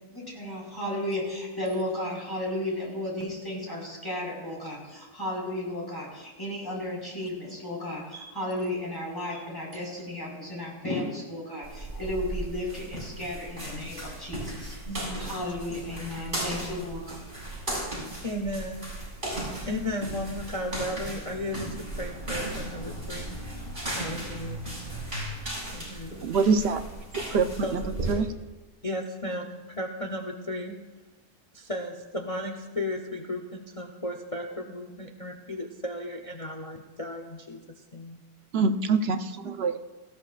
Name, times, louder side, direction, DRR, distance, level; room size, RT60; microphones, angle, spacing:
voice 1, 0.1-14.8 15.2-17.3, left 1 dB, 15° left, -4 dB, 4.9 m, -34 dB
sound 1, 11.6-28.1, right 1 dB, 30° right, 5.7 m, -36 dB
voice 2, 14.8-15.3 18.2-18.9 19.7-23.4 23.8-24.7 25.7-26.3 27.6-27.9 28.8-30.8 31.5-38.2, left 1 dB, 30° left, 3 dB, 0.7 m, -35 dB
voice 3, 26.2-26.8 27.3-27.8 28.1-28.3 38.5-39.8, right 4 dB, 55° right, 7 dB, 0.8 m, -24 dB
18.5 x 15.0 x 2.5 m, 1.2 s
omnidirectional pair, 1.7 m